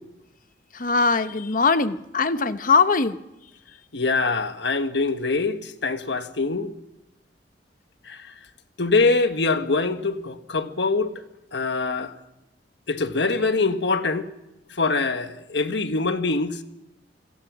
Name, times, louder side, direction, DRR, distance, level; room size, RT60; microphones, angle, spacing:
voice 1, 0.7-3.2, left 4 dB, 50° left, 1.0 m, -21 dB
voice 2, 3.9-6.7 8.1-8.2 8.8-11.1 11.5-12.1 12.9-14.3 14.8-16.6, left 3 dB, 75° left, 1.5 m, -24 dB
27.0 x 17.5 x 6.3 m
head